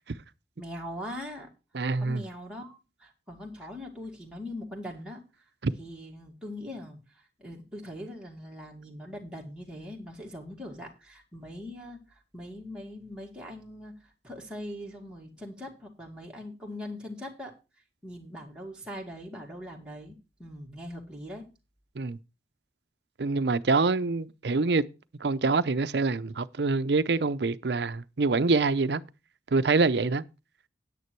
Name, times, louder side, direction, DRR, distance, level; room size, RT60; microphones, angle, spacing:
voice 1, 0.6-1.5 2.0-5.2 5.8-12.0 12.3-17.5 18.0-21.4, left 1 dB, 5° right, 2.2 m, -41 dB
voice 2, 1.7-2.2 5.6-5.7 22.0-22.2 23.2-24.8 25.2-29.0 29.5-30.2, right 3 dB, 75° right, 0.6 m, -25 dB
9.7 x 9.1 x 4.6 m
head